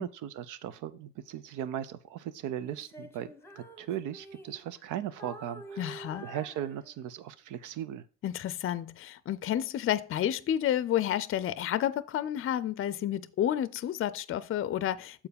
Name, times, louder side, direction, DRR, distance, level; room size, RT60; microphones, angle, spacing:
voice 1, 0.0-8.1, right 10 dB, 85° right, 0.6 m, -38 dB
Female singing, 2.6-4.9 5.2-7.3, right 1 dB, 10° left, 0.8 m, -48 dB
voice 2, 5.8-6.3 8.2-15.3, left 11 dB, 45° left, 0.5 m, -30 dB
7.1 x 4.6 x 5.1 m
cardioid pair, 90°, 30 cm